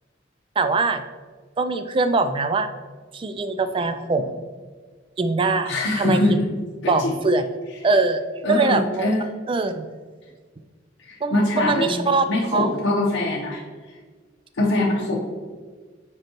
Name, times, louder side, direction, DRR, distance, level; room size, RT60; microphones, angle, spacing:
voice 1, 0.6-1.0 1.6-2.7 3.1-4.4 5.2-6.2 6.9-7.4 7.8-8.2 8.5-9.2 9.5-9.9 11.2-12.2 12.5-12.7, right 3 dB, 25° right, 10 dB, 0.3 m, -22 dB
voice 2, 5.6-6.5 6.8-7.1 8.4-9.3 11.0-13.6 14.6-15.2, left 2 dB, 75° left, -5 dB, 0.8 m, -23 dB
7.8 x 4.5 x 2.9 m, 1.5 s
head